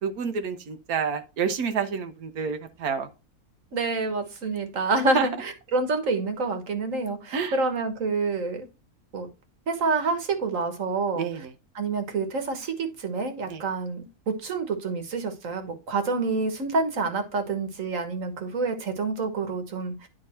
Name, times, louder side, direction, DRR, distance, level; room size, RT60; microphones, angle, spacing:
voice 1, 0.0-3.1 5.1-5.3 7.3-7.6 11.2-11.5 13.5-13.6, right 6 dB, 80° right, 1.3 m, -28 dB
voice 2, 3.7-8.7 9.1-9.3 9.7-11.2 11.7-20.1, right 3 dB, 65° right, 1.7 m, -28 dB
10.0 x 3.8 x 4.3 m
omnidirectional pair, 1.5 m